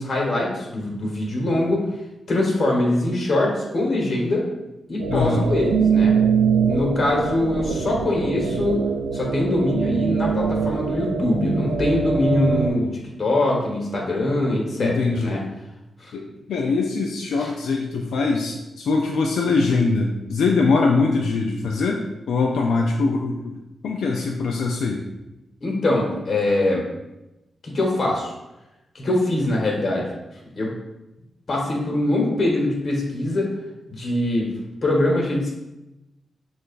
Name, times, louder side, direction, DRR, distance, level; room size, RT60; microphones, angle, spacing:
voice 1, 0.0-1.8 2.3-4.4 4.9-6.1 6.7-8.8 9.1-15.4 16.0-16.1 17.4-17.5 25.6-26.8 27.6-28.3 28.9-30.1 30.6-30.7 31.5-33.5 33.9-34.5 34.8-35.5, left 1 dB, 55° left, -2 dB, 1.2 m, -23 dB
sound 1, 5.0-12.7, right 6 dB, 90° right, 0.3 m, -23 dB
voice 2, 5.1-5.5 14.8-15.4 16.1-23.6 23.8-25.0, left 3 dB, 80° left, 1 dB, 0.4 m, -22 dB
6.3 x 2.4 x 2.5 m, 0.98 s
supercardioid pair, 45°, 0 cm